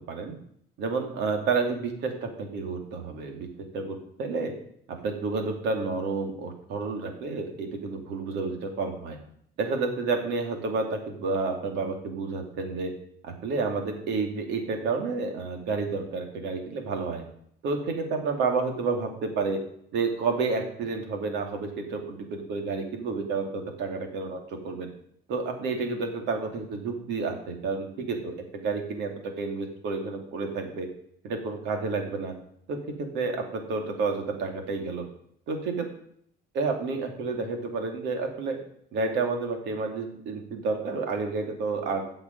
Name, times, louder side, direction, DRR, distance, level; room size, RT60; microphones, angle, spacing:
voice 1, 0.8-3.5 3.7-4.5 4.9-9.2 9.6-12.9 13.2-17.2 17.6-19.6 19.9-24.4 24.6-24.9 25.3-30.9 31.2-32.3 32.7-35.1 35.5-35.9 36.5-38.6 38.9-42.1, right 4 dB, 80° right, 3 dB, 2.7 m, -30 dB
17.0 x 6.0 x 5.4 m, 0.67 s
cardioid pair, 100°, 18 cm